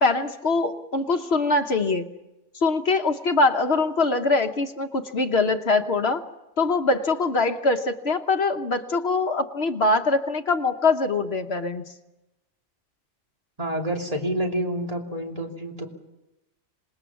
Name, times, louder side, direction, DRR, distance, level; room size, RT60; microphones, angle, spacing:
voice 1, 0.0-2.1 2.6-6.2 6.6-11.8, left 3 dB, 60° left, 7 dB, 1.3 m, -23 dB
voice 2, 13.6-15.9, right 1 dB, 30° right, 1 dB, 3.0 m, -28 dB
26.5 x 20.0 x 7.1 m, 0.97 s
omnidirectional pair, 1.2 m